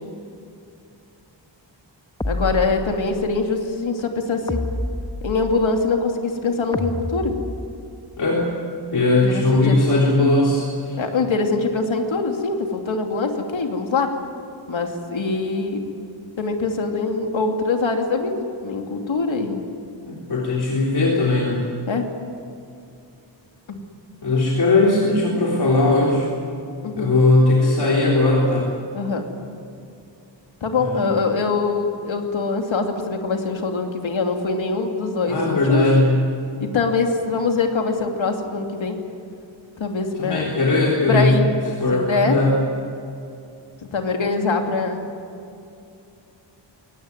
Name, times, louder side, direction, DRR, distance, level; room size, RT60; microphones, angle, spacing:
sound 1, 2.2-3.3 4.5-5.7 6.7-8.0, left 1 dB, 10° left, 1.1 m, -29 dB
voice 1, 2.3-4.6 5.2-7.3 9.2-9.7 11.0-14.1 14.7-15.8 16.4-18.3 18.6-19.6 21.9-22.1 23.7-23.8 26.8-27.1 28.9-29.2 30.6-35.9 36.6-39.0 39.8-40.5 41.1-41.5 41.9-42.4 43.9-45.1, left 4 dB, 90° left, 3 dB, 2.8 m, -23 dB
voice 2, 8.2-8.5 8.9-11.0 20.1-21.7 24.2-26.3 27.0-28.7 30.8-31.2 35.2-36.3 40.1-41.3 41.8-42.5, left 2 dB, 60° left, -4 dB, 3.7 m, -19 dB
22.5 x 18.5 x 9.6 m, 2.6 s
wide cardioid pair, 150°, 45 cm